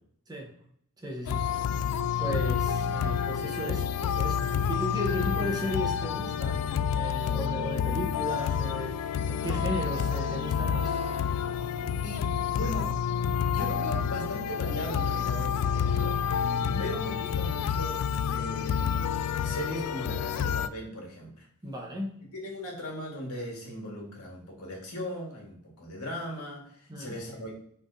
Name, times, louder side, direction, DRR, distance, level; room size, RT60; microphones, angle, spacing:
voice 1, 1.0-1.9 2.2-11.0 16.6-16.8 21.6-22.2 26.9-27.1, equal, 20° right, -1 dB, 1.0 m, -36 dB
sound 1, 1.3-20.7, left 7 dB, 90° left, 0.3 m, -29 dB
voice 2, 12.0-13.0 13.4-16.2 16.8-18.0 18.3-19.1 19.4-21.5 22.3-27.5, equal, 70° left, -1 dB, 1.6 m, -38 dB
5.9 x 3.4 x 2.6 m, 0.65 s
head